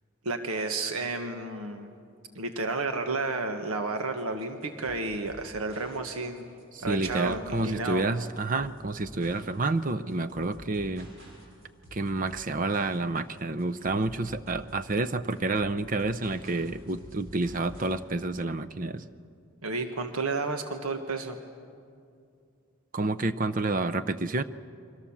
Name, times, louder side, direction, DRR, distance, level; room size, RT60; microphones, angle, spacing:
voice 1, 0.2-1.9 2.3-6.5 6.8-8.0 19.6-21.4, right 3 dB, 85° right, 6 dB, 1.5 m, -31 dB
sound 1, 4.0-18.0, left 1 dB, 60° right, 6.4 m, -49 dB
voice 2, 6.7-11.1 11.9-19.1 22.9-24.4, right 2 dB, 40° right, 10 dB, 0.6 m, -29 dB
30.0 x 23.5 x 7.3 m, 2.4 s
head